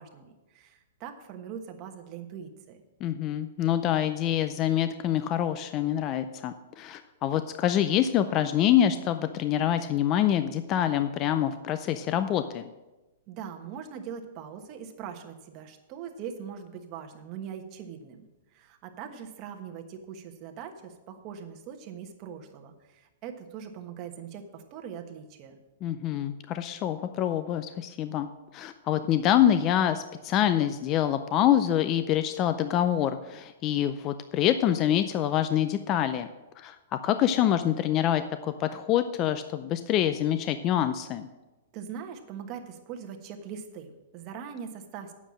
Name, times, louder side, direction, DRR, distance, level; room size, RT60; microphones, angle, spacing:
voice 1, 0.0-2.8 13.3-25.6 41.7-45.1, right 7 dB, 35° right, 4 dB, 1.2 m, -41 dB
voice 2, 3.0-12.7 25.8-28.3 28.5-36.3 36.6-36.8 37.0-41.3, left 11 dB, 30° left, 10 dB, 0.5 m, -26 dB
8.9 x 7.2 x 6.3 m, 1.1 s
hypercardioid pair, 140°, 0 cm